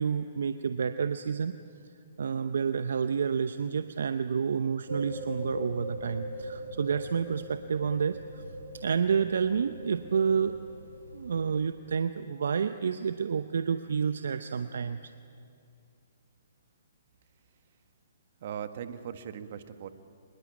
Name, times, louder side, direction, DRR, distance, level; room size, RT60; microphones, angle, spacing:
voice 1, 0.0-1.6 2.2-8.4 8.8-10.6 11.1-15.0, right 6 dB, 70° right, 11 dB, 0.8 m, -29 dB
sound 1, 4.9-11.6, equal, 90° right, 4.1 m, -41 dB
voice 2, 18.4-19.9, right 9 dB, 50° right, 10 dB, 1.6 m, -39 dB
25.5 x 20.5 x 8.7 m, 2.5 s
figure-of-eight pair, 130°, 0 cm